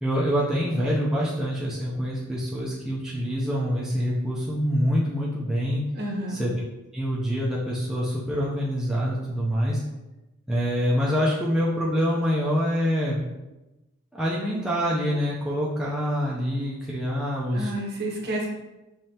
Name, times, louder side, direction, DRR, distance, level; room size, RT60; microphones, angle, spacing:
voice 1, 0.0-5.8 6.3-6.5 6.9-9.8 10.5-13.2 14.1-17.7, equal, 5° right, -6 dB, 0.6 m, -25 dB
voice 2, 5.9-6.4 17.5-18.5, right 1 dB, 45° right, -2 dB, 1.0 m, -30 dB
5.2 x 3.3 x 2.9 m, 1.0 s
head